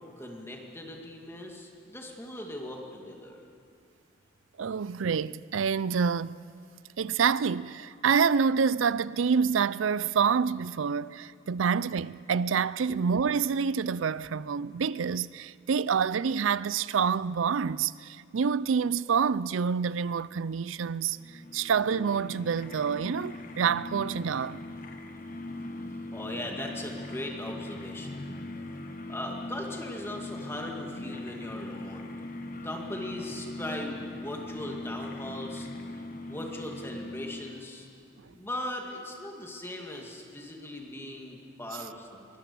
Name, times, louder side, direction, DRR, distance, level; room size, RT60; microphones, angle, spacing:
voice 1, 0.2-3.4 12.9-13.1 26.1-28.3 29.1-32.0 32.6-35.7 36.3-37.9 38.3-42.3, left 1 dB, 15° left, 2.1 m, -39 dB
voice 2, 4.6-6.3 7.0-24.6, right 6 dB, 85° right, 0.5 m, -27 dB
sound 1, 21.1-37.8, left 2 dB, 45° left, 1.5 m, -40 dB
23.0 x 20.5 x 6.9 m
head